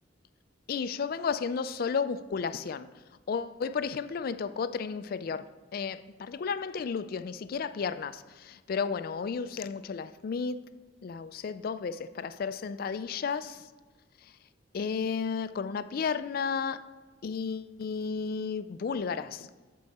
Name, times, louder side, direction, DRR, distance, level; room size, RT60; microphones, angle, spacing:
voice 1, 0.7-2.9 3.3-10.6 11.0-13.7 14.2-14.3 14.7-16.9 17.2-19.5, left 5 dB, 50° left, 0.3 m, -33 dB
13.0 x 4.6 x 4.1 m
head